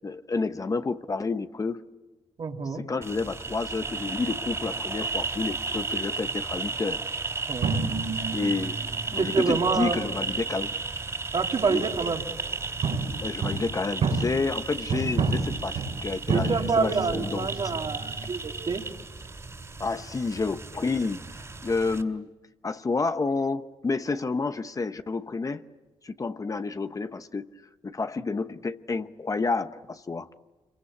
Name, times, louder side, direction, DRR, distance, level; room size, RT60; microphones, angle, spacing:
voice 1, 0.0-1.8 2.7-7.0 8.3-8.8 9.1-10.7 11.6-11.8 13.2-17.5 19.8-21.2 21.6-22.3 22.6-25.6 26.0-27.5 27.8-30.3, left 4 dB, 30° left, 10 dB, 0.9 m, -30 dB
voice 2, 2.4-2.8 7.5-7.7 9.1-10.0 11.3-12.2 16.3-18.8, right 4 dB, 50° right, 2 dB, 2.9 m, -27 dB
sound 1, 3.0-22.0, right 3 dB, 25° right, 3.1 m, -34 dB
sound 2, 7.6-12.0 12.2-18.3, right 4 dB, 80° right, 4.7 m, -31 dB
27.0 x 23.5 x 8.6 m, 1.2 s
cardioid pair, 90°, 11 cm